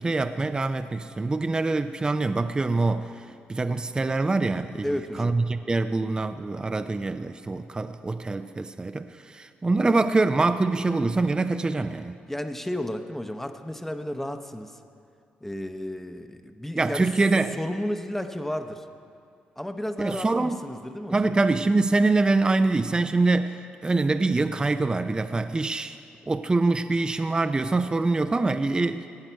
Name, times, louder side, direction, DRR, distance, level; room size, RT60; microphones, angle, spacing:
voice 1, 0.0-4.9 5.2-12.2 16.8-17.6 20.0-20.6 21.1-26.0 26.3-29.1, right 3 dB, 25° right, 10 dB, 0.4 m, -24 dB
voice 2, 4.8-5.4 12.3-14.8 15.4-17.1 17.6-18.9 19.6-21.3, left 1 dB, 10° left, 8 dB, 0.8 m, -32 dB
15.5 x 8.9 x 4.5 m, 2.4 s
supercardioid pair, 60°, 4 cm